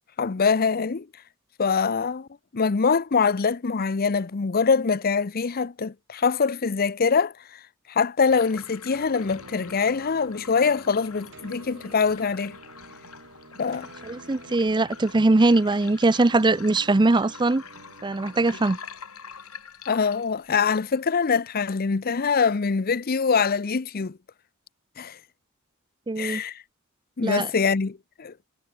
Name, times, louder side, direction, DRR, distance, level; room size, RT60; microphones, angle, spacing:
voice 1, 0.2-1.1 1.6-2.3 2.5-7.6 7.9-12.6 13.6-13.9 19.9-24.2 25.0-25.2 26.2-26.6 27.2-28.3, left 5 dB, 45° left, 0.6 m, -24 dB
sound 1, 8.3-21.3, left 6 dB, 80° left, 6.5 m, -45 dB
sound 2, 8.9-18.5, right 2 dB, 60° right, 6.2 m, -48 dB
voice 2, 14.0-17.6 18.0-18.8 26.1-26.4 27.2-27.5, right 2 dB, 20° right, 0.5 m, -21 dB
head